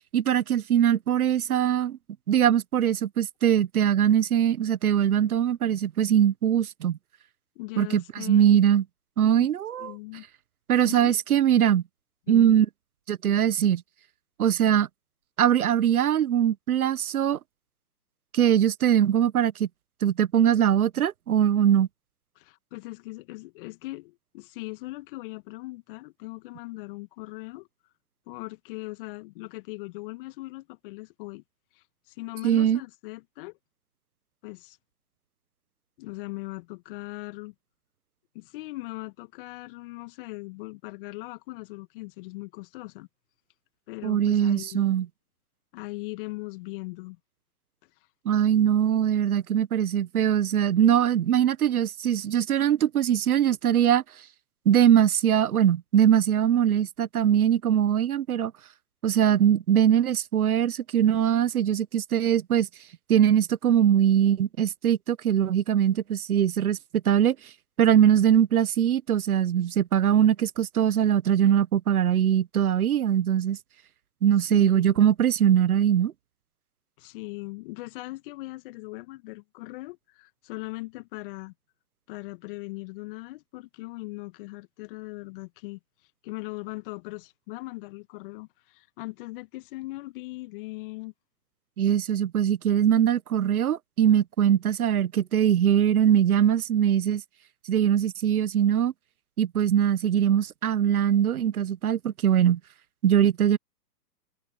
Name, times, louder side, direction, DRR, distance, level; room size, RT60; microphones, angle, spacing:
voice 1, 0.1-2.0 2.3-7.0 7.8-8.8 9.2-9.9 10.7-11.8 12.3-12.7 13.1-13.8 14.4-14.9 15.4-17.4 18.3-19.7 20.0-21.9 32.4-32.8 44.0-45.1 48.2-54.0 54.6-58.5 59.0-62.7 63.1-66.8 67.0-67.3 67.8-73.6 74.2-76.1 91.8-97.2 97.7-98.9 99.4-102.6 103.0-103.6, right 10 dB, 60° right, 1.3 m, -22 dB
voice 2, 7.5-8.7 9.3-9.5 9.8-10.3 10.8-11.1 12.3-12.5 22.3-27.7 28.3-31.4 31.7-33.5 34.4-34.8 36.0-37.5 38.3-43.1 43.9-45.0 45.7-47.2 74.5-75.0 77.0-81.5 82.1-85.8 86.2-91.1, left 22 dB, 35° left, 1.7 m, -39 dB
hypercardioid pair, 130°, 49 cm